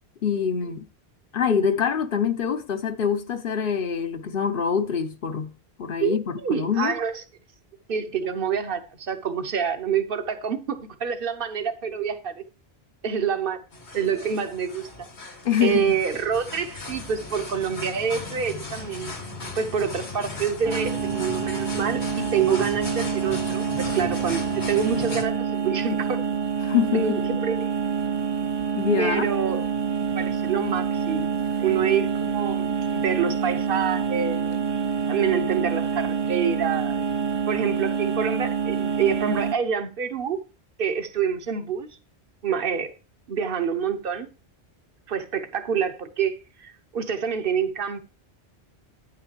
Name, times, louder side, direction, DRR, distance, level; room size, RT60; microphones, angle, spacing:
voice 1, 0.2-0.8 1.3-7.0 15.4-15.9 26.6-27.2 28.7-29.3, left 7 dB, 60° left, 0.9 m, -25 dB
voice 2, 6.0-7.2 7.9-12.4 13.0-13.6 13.9-15.1 15.6-19.1 19.5-26.2 26.9-27.7 29.0-29.6 30.2-31.3 31.6-34.6 35.1-37.0 37.5-40.4 40.8-41.9 42.4-42.9 43.3-44.3 45.1-48.0, right 7 dB, 60° right, 1.2 m, -27 dB
sound 1, 13.7-25.2, left 2 dB, 85° left, 2.2 m, -37 dB
sound 2, 20.6-39.5, right 6 dB, 35° right, 0.4 m, -27 dB
9.8 x 9.0 x 2.9 m
omnidirectional pair, 1.1 m